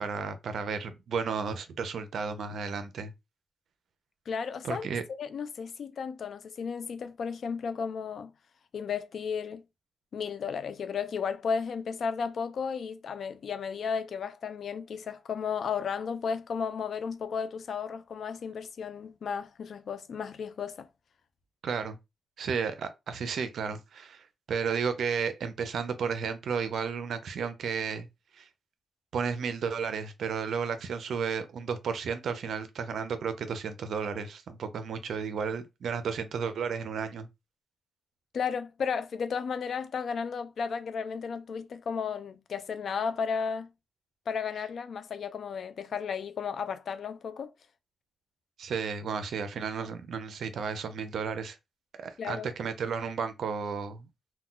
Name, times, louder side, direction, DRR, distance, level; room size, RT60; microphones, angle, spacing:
voice 1, 0.0-3.1 4.6-5.0 21.6-22.0 22.4-28.1 28.3-28.5 29.1-37.3 48.6-51.6 52.0-54.1, right 6 dB, 75° right, 0.4 m, -33 dB
voice 2, 4.3-4.9 5.2-8.3 8.7-9.6 10.1-20.9 38.3-43.7 44.3-47.5 52.2-52.5, left 6 dB, 70° left, 0.4 m, -34 dB
2.2 x 2.2 x 3.7 m
cardioid pair, 75°, 0 cm